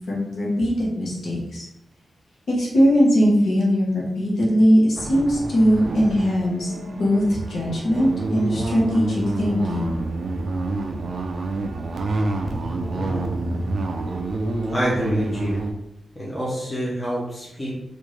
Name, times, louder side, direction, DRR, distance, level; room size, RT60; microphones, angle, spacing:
voice 1, 0.1-1.6 2.5-9.9, equal, 60° left, -5 dB, 1.1 m, -20 dB
sound 1, 5.0-15.7, right 2 dB, 50° right, 0.4 m, -28 dB
voice 2, 12.9-13.3 14.7-15.6 16.1-17.7, equal, 15° left, -6 dB, 0.8 m, -27 dB
3.5 x 2.5 x 3.2 m, 0.82 s
wide cardioid pair, 180°, 0 cm